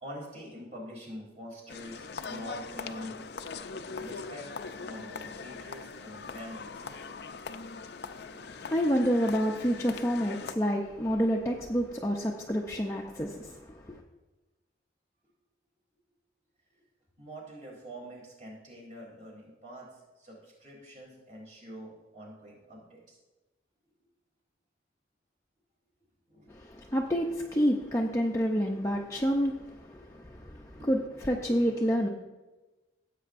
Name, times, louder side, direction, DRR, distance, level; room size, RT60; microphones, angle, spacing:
voice 1, 0.0-3.2 4.0-4.5 4.8-6.9 17.2-19.9 20.2-23.2 26.3-26.5 29.9-30.0 30.7-30.9, equal, 40° right, -3 dB, 3.6 m, -45 dB
sound 1, 1.7-10.5, left 4 dB, 60° left, 0.5 m, -41 dB
voice 2, 8.3-14.0 26.5-32.1, equal, 15° left, -1 dB, 0.6 m, -29 dB
15.5 x 8.2 x 2.6 m, 1.1 s
head